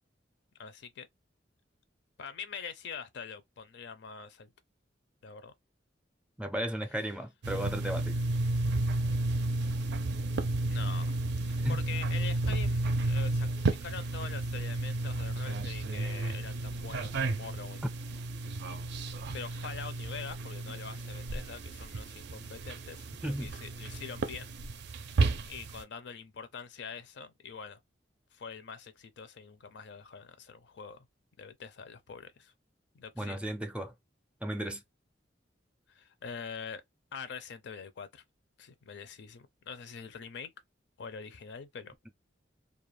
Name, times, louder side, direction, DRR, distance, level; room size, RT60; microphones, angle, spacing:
voice 1, 0.6-1.1 2.2-4.5 5.2-5.5 10.7-11.2 11.4-17.8 19.3-24.5 25.1-27.8 28.3-31.1 31.4-32.5 32.9-33.4 35.9-36.8 37.1-38.2 38.6-40.5 41.0-42.0, left 6 dB, 65° left, 0.5 m, -44 dB
voice 2, 6.4-8.2 11.6-11.8 23.2-23.5 33.2-33.9 34.4-34.8, right 1 dB, 5° right, 0.4 m, -35 dB
sound 1, 7.4-25.8, right 2 dB, 65° right, 0.4 m, -32 dB
2.3 x 2.2 x 3.0 m
head